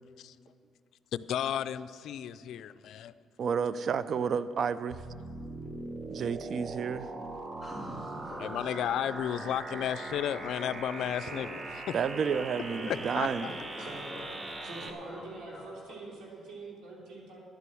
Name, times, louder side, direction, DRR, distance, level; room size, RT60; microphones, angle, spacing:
voice 1, 1.1-3.1 8.4-11.6 11.9-12.0 12.9-13.5, left 10 dB, 75° left, 14 dB, 0.4 m, -33 dB
voice 2, 3.4-5.0 6.1-7.1 11.9-13.5, right 6 dB, 60° right, 15 dB, 0.5 m, -31 dB
sound 1, 4.9-14.9, right 2 dB, 35° right, 1.1 m, -40 dB
voice 3, 7.5-8.8 12.1-12.2 12.7-15.7 16.2-16.3, left 1 dB, 10° left, -8 dB, 3.0 m, -46 dB
voice 4, 14.6-17.4, right 3 dB, 85° right, -3 dB, 3.4 m, -45 dB
12.0 x 8.4 x 7.7 m, 2.3 s
cardioid pair, 90°, 0 cm